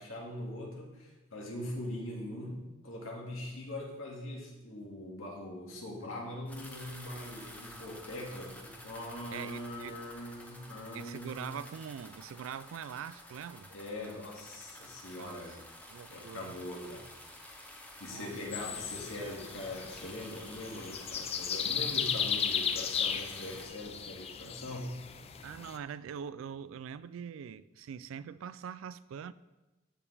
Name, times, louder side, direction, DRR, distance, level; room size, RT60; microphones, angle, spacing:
voice 1, 0.0-11.5 13.7-15.6 16.1-17.1 18.0-25.0, left 1 dB, 85° left, 2.0 m, -42 dB
sound 1, 6.5-23.7, left 1 dB, 10° left, 0.9 m, -50 dB
voice 2, 9.3-10.1 10.9-13.7 15.2-15.4 15.9-16.6 18.1-18.7 25.4-29.3, right 7 dB, 80° right, 0.3 m, -43 dB
sound 2, 18.5-25.8, left 7 dB, 30° left, 0.4 m, -35 dB
14.0 x 5.0 x 3.4 m
head